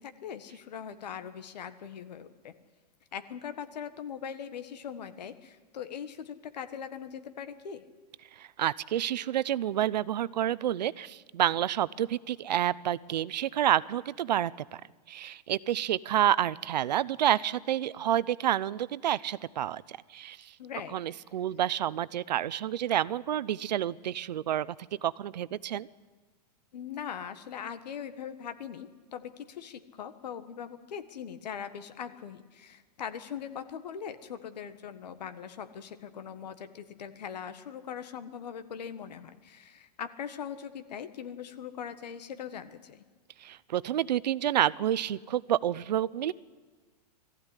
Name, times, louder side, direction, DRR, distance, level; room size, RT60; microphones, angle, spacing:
voice 1, 0.0-2.5 3.1-7.8 20.6-20.9 26.7-43.0, left 8 dB, 75° left, 10 dB, 1.5 m, -41 dB
voice 2, 8.4-14.8 15.1-20.5 20.9-24.8 25.0-25.9 43.4-46.3, right 11 dB, 90° right, 19 dB, 0.7 m, -29 dB
19.5 x 15.0 x 9.9 m, 1.4 s
supercardioid pair, 170°, 21 cm